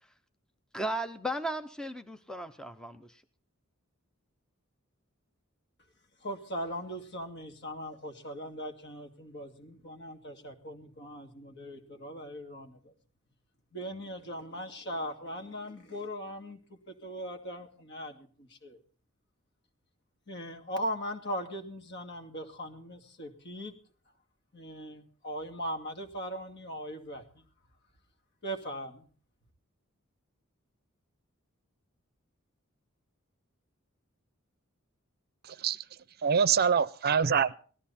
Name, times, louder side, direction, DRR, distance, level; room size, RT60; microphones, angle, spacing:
voice 1, 0.7-3.2, right 1 dB, 5° left, 0.7 m, -36 dB
voice 2, 6.2-12.9 13.7-16.6 16.9-18.8 20.3-23.7 24.5-27.4 28.4-29.1, equal, 55° left, 2.5 m, -39 dB
voice 3, 35.5-35.8 36.2-37.5, right 7 dB, 50° right, 0.6 m, -25 dB
18.0 x 13.5 x 4.2 m
head